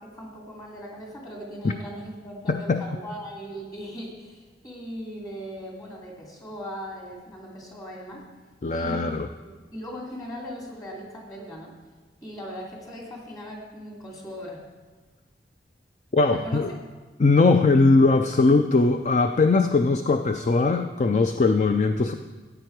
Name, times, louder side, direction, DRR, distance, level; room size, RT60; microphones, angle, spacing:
voice 1, 0.0-8.3 8.7-9.1 9.5-11.7 12.2-14.6 16.3-16.6, equal, 25° left, -2 dB, 2.7 m, -39 dB
voice 2, 2.5-2.8 8.6-9.3 16.1-16.7 17.2-22.1, left 3 dB, 40° left, 7 dB, 0.4 m, -20 dB
14.0 x 8.9 x 4.6 m, 1.3 s
head